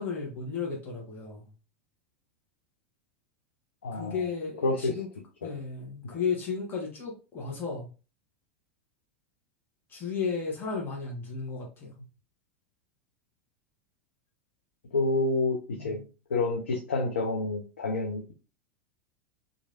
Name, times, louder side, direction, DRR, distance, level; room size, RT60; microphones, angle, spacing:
voice 1, 0.0-1.5 3.9-5.1 5.4-7.9 9.9-11.9 15.7-16.1, left 5 dB, 30° left, -2 dB, 1.1 m, -34 dB
voice 2, 3.8-4.2 4.6-5.0 6.1-6.2 14.9-16.0 16.3-18.3, left 2 dB, 80° left, 1 dB, 0.5 m, -28 dB
3.0 x 2.5 x 2.5 m, 0.33 s
figure-of-eight pair, 85°, 7 cm